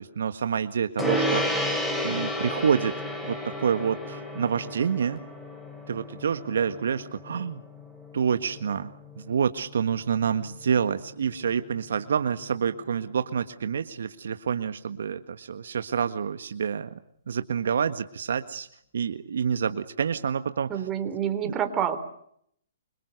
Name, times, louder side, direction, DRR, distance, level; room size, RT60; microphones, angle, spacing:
voice 1, 0.0-1.5 2.0-2.9 3.2-5.2 5.9-7.6 8.1-16.9 17.3-18.7 18.9-20.7 21.4-21.6, right 7 dB, 70° right, 9 dB, 1.7 m, -28 dB
Gong, 1.0-10.7, left 1 dB, 10° left, 7.6 m, -32 dB
voice 2, 20.7-22.0, right 9 dB, 20° right, 8 dB, 3.9 m, -27 dB
27.5 x 25.5 x 6.7 m, 0.68 s
hypercardioid pair, 135°, 0 cm